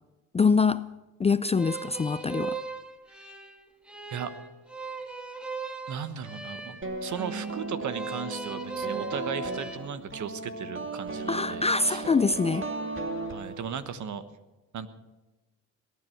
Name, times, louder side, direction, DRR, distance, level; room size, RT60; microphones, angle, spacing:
voice 1, 0.3-0.8 1.2-2.6 11.3-12.7, left 4 dB, 20° left, 0.4 m, -24 dB
sound 1, 1.5-9.8, right 4 dB, 5° right, 1.8 m, -39 dB
voice 2, 5.9-12.1 13.3-14.2 14.7-14.9, right 7 dB, 60° right, 1.3 m, -36 dB
sound 2, 6.8-13.9, right 2 dB, 35° right, 2.3 m, -36 dB
20.5 x 9.6 x 5.9 m
supercardioid pair, 70°, 33 cm